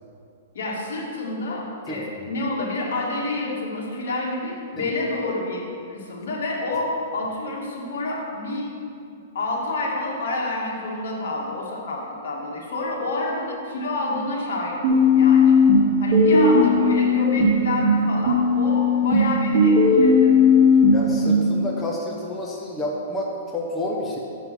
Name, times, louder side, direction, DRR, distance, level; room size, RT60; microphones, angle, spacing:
voice 1, 0.5-5.6 5.9-8.6 9.3-15.6 16.0-20.4, left 2 dB, 75° left, -2 dB, 2.0 m, -28 dB
sound 1, 14.8-17.8 18.3-21.3, left 3 dB, 30° right, 2.2 m, -17 dB
voice 2, 20.9-24.2, left 1 dB, 10° left, -3 dB, 0.8 m, -29 dB
7.4 x 5.4 x 6.1 m, 2.5 s
hypercardioid pair, 155°, 0 cm